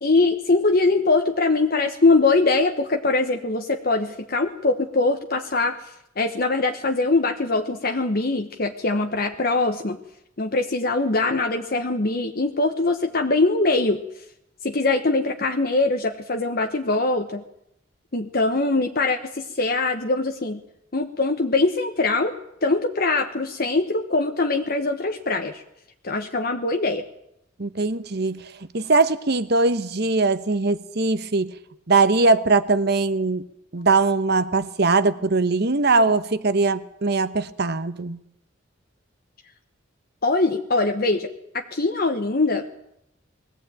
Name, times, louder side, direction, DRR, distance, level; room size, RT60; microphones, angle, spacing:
voice 1, 0.0-5.8 6.2-10.0 10.4-14.0 14.6-17.4 18.1-20.6 20.9-22.3 22.6-25.6 26.0-27.1 40.2-42.7, left 3 dB, 50° left, 4 dB, 1.1 m, -22 dB
voice 2, 27.6-31.5 31.9-33.5 33.7-38.2, right 3 dB, 55° right, 13 dB, 1.0 m, -21 dB
20.5 x 15.5 x 9.0 m, 0.80 s
head